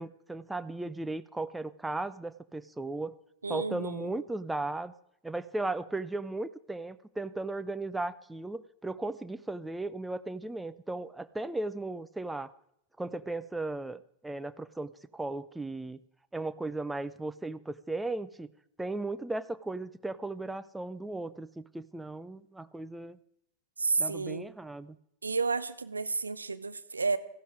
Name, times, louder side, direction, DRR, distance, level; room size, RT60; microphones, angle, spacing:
voice 1, 0.0-3.1 3.5-4.9 5.2-12.5 13.0-16.0 16.3-18.5 18.8-23.2 24.0-25.0, right 2 dB, 5° right, 13 dB, 0.6 m, -36 dB
voice 2, 3.4-4.1 23.8-24.5 25.2-27.2, right 4 dB, 80° right, 12 dB, 0.8 m, -31 dB
15.0 x 12.5 x 4.9 m, 0.76 s
figure-of-eight pair, 90°, 0 cm